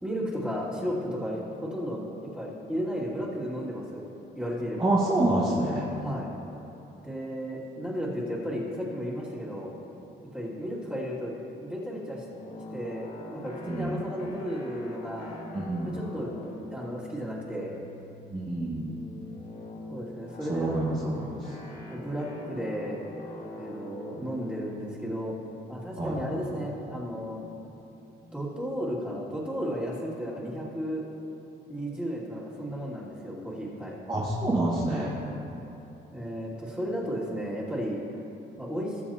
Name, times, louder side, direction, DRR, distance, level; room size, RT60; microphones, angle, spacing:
voice 1, 0.0-4.0 4.4-4.9 6.0-6.3 7.0-9.7 10.2-12.3 12.7-15.4 15.8-17.8 19.9-20.8 21.9-23.0 23.6-25.4 25.7-27.5 28.3-31.0 31.7-34.0 36.1-38.0 38.6-39.0, equal, 5° right, -8 dB, 2.5 m, -34 dB
voice 2, 4.8-5.9 13.7-14.0 15.5-16.0 18.3-18.9 20.5-21.5 26.0-26.2 34.1-35.2, right 1 dB, 20° right, -7 dB, 1.7 m, -27 dB
sound 1, 12.3-28.8, left 1 dB, 45° left, 1.5 m, -44 dB
20.0 x 7.0 x 2.9 m, 2.9 s
cardioid pair, 90°, 20 cm